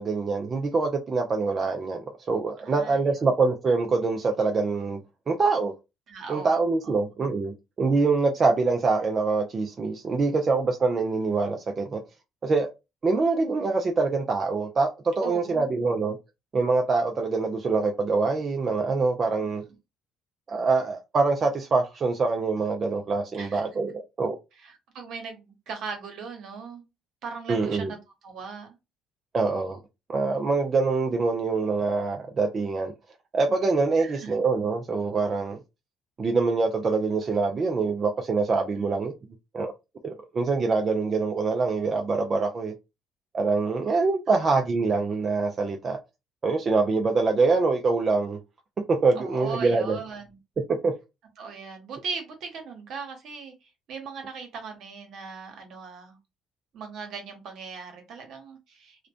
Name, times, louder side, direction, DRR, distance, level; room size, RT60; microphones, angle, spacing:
voice 1, 0.0-5.0 5.3-5.7 6.3-12.0 12.4-12.7 13.0-16.2 16.5-19.6 20.5-24.4 27.5-27.9 29.3-29.8 30.1-32.9 33.3-35.6 36.2-39.1 39.5-39.7 40.0-42.7 43.3-46.0 46.4-48.4 48.9-50.0 50.7-50.9, right 4 dB, 40° right, 0.4 m, -25 dB
voice 2, 2.6-3.0 6.1-6.5 6.8-6.9 15.2-15.7 19.4-19.8 23.3-23.6 24.6-26.8 27.2-28.0 28.2-28.7 34.0-34.3 38.8-38.9 44.3-44.4 49.1-50.4 51.4-56.2 56.7-59.1, right 5 dB, 70° right, 0.9 m, -39 dB
2.5 x 2.1 x 2.4 m
supercardioid pair, 70°, 0 cm